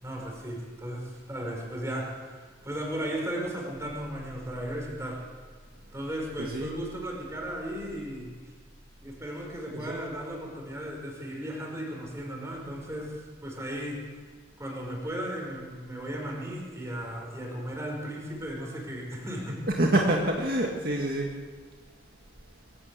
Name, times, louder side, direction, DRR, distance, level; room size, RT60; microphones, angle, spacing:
voice 1, 0.0-5.2 5.9-8.5 9.0-14.0 14.6-19.6, equal, 15° right, -1 dB, 5.4 m, -36 dB
voice 2, 6.4-6.7 9.7-10.0 19.7-21.4, right 1 dB, 50° right, 0 dB, 2.1 m, -26 dB
23.0 x 16.0 x 8.3 m, 1.5 s
head